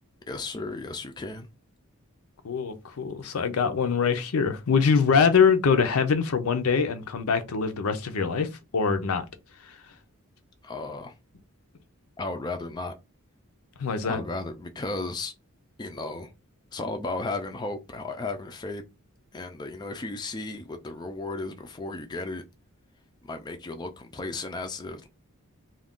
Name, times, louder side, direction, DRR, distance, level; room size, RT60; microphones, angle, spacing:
voice 1, 0.3-1.5 10.6-11.1 12.2-12.9 14.0-15.3 15.8-16.3 16.7-18.8 19.3-22.4 23.2-25.1, left 2 dB, 20° left, 0.3 m, -34 dB
voice 2, 2.4-8.5 8.7-9.2 13.8-14.2, left 5 dB, 75° left, 0.5 m, -23 dB
2.4 x 2.2 x 3.5 m
head